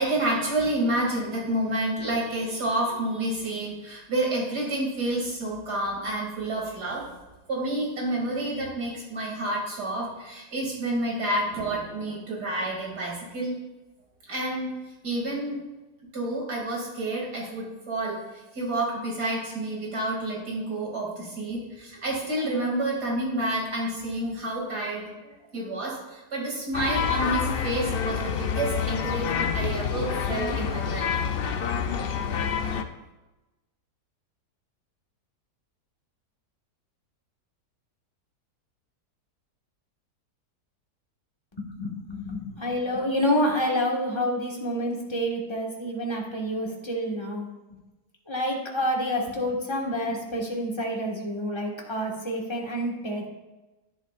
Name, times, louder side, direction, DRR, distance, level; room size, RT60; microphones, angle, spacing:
voice 1, 0.0-7.0 7.5-13.6 14.3-14.7 15.0-15.6 16.1-18.2 18.5-31.1, right 1 dB, 75° right, -2 dB, 3.1 m, -29 dB
sound 1, 26.7-32.8, left 7 dB, 75° left, 0.5 m, -27 dB
voice 2, 41.5-47.5 48.3-53.3, equal, 15° left, -1 dB, 1.6 m, -28 dB
11.0 x 10.5 x 2.5 m, 1.1 s
omnidirectional pair, 1.7 m